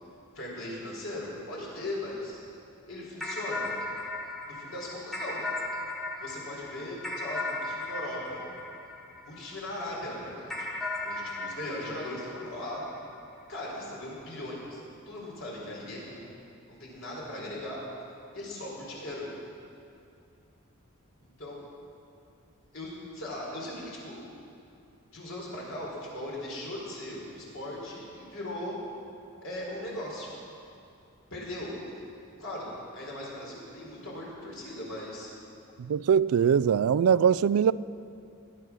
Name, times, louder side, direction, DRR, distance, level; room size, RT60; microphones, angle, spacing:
voice 1, 0.3-2.4 2.9-3.7 4.4-5.4 6.2-8.4 9.2-10.7 11.0-12.8 13.5-16.2 16.7-17.8 18.3-19.2 21.2-21.6 22.7-24.2 25.1-28.8 29.4-30.3 31.3-32.0 32.4-32.7 32.9-35.3, left 1 dB, 65° left, 4.6 m, -38 dB
sound 1, 3.2-9.8 10.5-13.3, left 2 dB, ahead, 1.0 m, -37 dB
voice 2, 35.8-37.7, right 7 dB, 90° right, 0.4 m, -22 dB
18.0 x 11.0 x 6.2 m
head